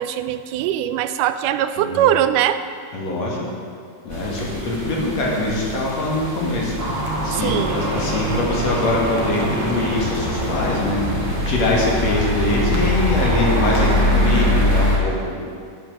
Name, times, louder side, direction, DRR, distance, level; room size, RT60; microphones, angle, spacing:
voice 1, 0.0-2.6 7.4-7.9, right 11 dB, 85° right, 11 dB, 2.1 m, -21 dB
voice 2, 2.9-3.4 4.0-15.4, left 2 dB, 60° left, -3 dB, 2.9 m, -23 dB
sound 1, 4.1-15.0, left 1 dB, 10° right, 1.6 m, -24 dB
sound 2, 6.8-12.0, right 1 dB, 35° right, 2.5 m, -27 dB
10.5 x 8.8 x 6.3 m, 2.2 s
omnidirectional pair, 3.6 m